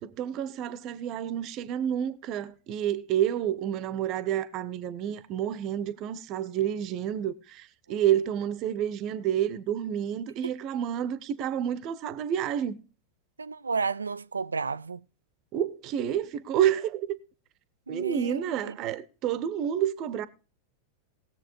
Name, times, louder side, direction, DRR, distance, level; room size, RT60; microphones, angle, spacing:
voice 1, 0.0-12.8 15.5-17.1 17.9-20.3, right 10 dB, 40° right, 0.9 m, -29 dB
voice 2, 13.4-15.0 17.9-18.8, right 4 dB, 75° right, 0.4 m, -32 dB
19.5 x 7.5 x 3.0 m
figure-of-eight pair, 90°, 0 cm